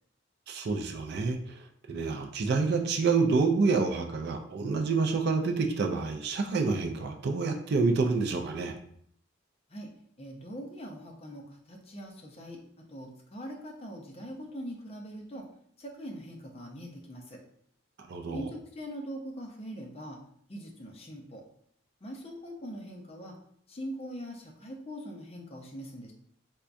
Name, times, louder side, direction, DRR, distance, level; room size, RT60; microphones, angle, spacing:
voice 1, 0.5-8.7 18.0-18.4, right 4 dB, 55° right, 4 dB, 0.4 m, -28 dB
voice 2, 10.2-12.6 12.9-15.5 15.8-17.4 18.3-20.2 20.5-21.4 22.0-23.4 23.7-26.1, equal, 30° left, 0 dB, 0.6 m, -42 dB
4.4 x 2.2 x 2.5 m, 0.65 s
head